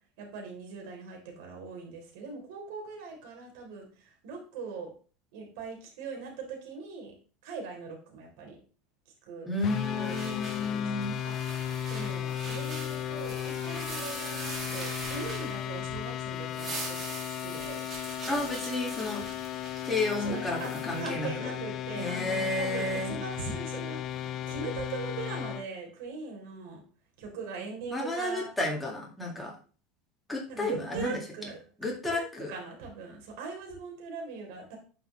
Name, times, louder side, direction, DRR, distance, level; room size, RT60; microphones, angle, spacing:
voice 1, 0.2-4.9 5.3-7.1 7.4-8.6 9.3-9.5 9.9-11.4 11.9-17.8 20.1-26.8 27.2-28.5 30.5-34.8, right 4 dB, 70° right, 1 dB, 3.4 m, -41 dB
voice 2, 9.5-11.2 18.3-19.2 19.8-21.5 22.0-23.1 27.9-29.5 30.3-31.2 31.8-32.5, left 2 dB, 5° left, -1 dB, 2.0 m, -32 dB
sound 1, 9.6-25.7, left 11 dB, 35° left, 0.4 m, -36 dB
sound 2, 9.6-16.0 16.3-21.0, right 3 dB, 25° right, 2.1 m, -42 dB
9.2 x 5.5 x 3.2 m, 0.39 s
supercardioid pair, 150°, 0 cm